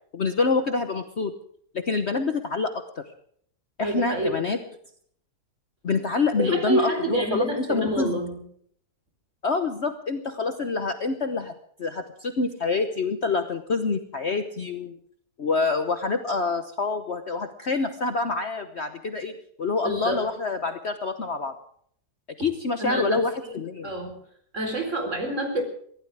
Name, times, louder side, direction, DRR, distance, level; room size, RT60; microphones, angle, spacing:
voice 1, 0.1-1.3 1.7-2.8 3.8-4.6 5.8-8.2 9.4-11.5 11.8-15.0 15.4-21.5 22.4-23.9, left 4 dB, 45° left, 7 dB, 1.2 m, -26 dB
voice 2, 3.8-4.4 6.4-8.4 19.8-20.2 22.8-23.6 23.8-24.2 24.5-25.6, right 1 dB, 45° right, 4 dB, 4.6 m, -28 dB
24.0 x 16.0 x 3.5 m, 0.63 s
omnidirectional pair, 1.7 m